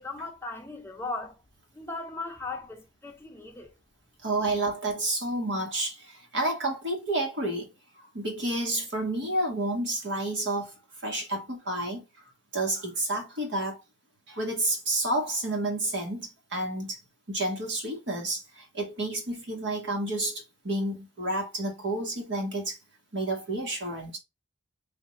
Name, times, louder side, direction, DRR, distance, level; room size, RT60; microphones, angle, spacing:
voice 1, 0.0-1.4 1.7-3.7, left 3 dB, 15° left, 0.7 m, -37 dB
voice 2, 4.2-10.8 11.0-12.0 12.5-13.8 14.3-17.0 17.3-22.8 23.1-24.2, right 2 dB, 65° right, 1.6 m, -30 dB
3.5 x 2.8 x 4.2 m
head